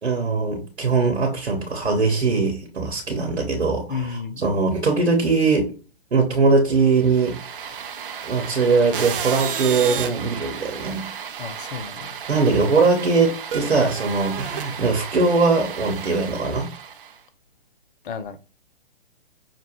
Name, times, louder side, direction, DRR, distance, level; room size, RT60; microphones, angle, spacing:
voice 1, 0.0-5.7 6.1-7.8 8.2-11.1 12.3-16.7, right 4 dB, 80° right, 1.1 m, -21 dB
voice 2, 3.9-4.4 11.4-12.2 18.0-18.4, left 6 dB, 55° left, 0.6 m, -32 dB
sound 1, 7.0-17.2, right 7 dB, 55° right, 0.6 m, -33 dB
5.6 x 2.2 x 3.0 m
figure-of-eight pair, 125°, 32 cm